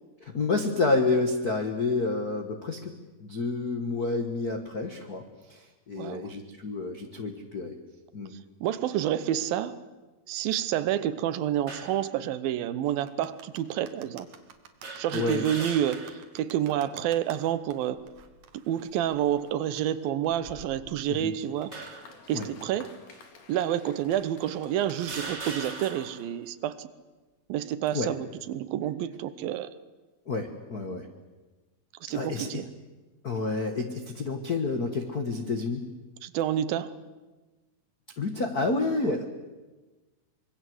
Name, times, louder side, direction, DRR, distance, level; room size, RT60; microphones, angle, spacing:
voice 1, 0.2-2.9 3.2-5.2 5.5-7.8 8.1-8.3 15.1-15.4 21.1-21.3 22.3-22.5 27.9-28.1 30.3-31.1 32.1-32.6 33.2-35.8 38.2-39.2, left 3 dB, 85° left, 5 dB, 0.8 m, -29 dB
voice 2, 6.0-6.3 8.6-9.8 10.3-14.3 15.0-18.0 18.7-21.8 22.3-22.9 23.5-26.9 27.5-29.7 32.1-32.7 36.2-36.9 39.0-39.1, right 11 dB, 80° right, 14 dB, 2.7 m, -29 dB
sound 1, 11.7-12.0 12.9-13.0 14.8-16.3 16.7-16.8 17.9-18.4 19.1-19.3 20.3-21.1 21.7-22.2 23.1-23.2 24.1-24.2 24.9-26.3, right 3 dB, 25° right, 1.6 m, -40 dB
sound 2, 13.0-20.5, right 8 dB, 60° right, 2.5 m, -51 dB
Applause, 21.1-26.7, left 4 dB, 55° left, 3.8 m, -53 dB
25.5 x 22.5 x 7.9 m, 1.2 s
omnidirectional pair, 4.3 m